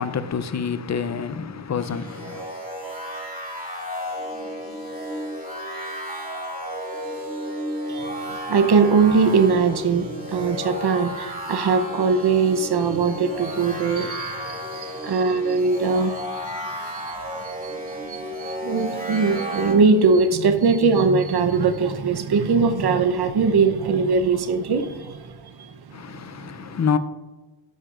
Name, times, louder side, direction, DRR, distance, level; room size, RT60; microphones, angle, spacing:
voice 1, 0.0-2.5 25.9-27.0, left 6 dB, 40° left, 0.5 m, -27 dB
sound 1, 1.8-19.7, equal, 20° right, 2.4 m, -33 dB
voice 2, 7.9-26.5, right 4 dB, 60° right, 0.9 m, -21 dB
13.5 x 10.5 x 2.5 m
wide cardioid pair, 130°, 45 cm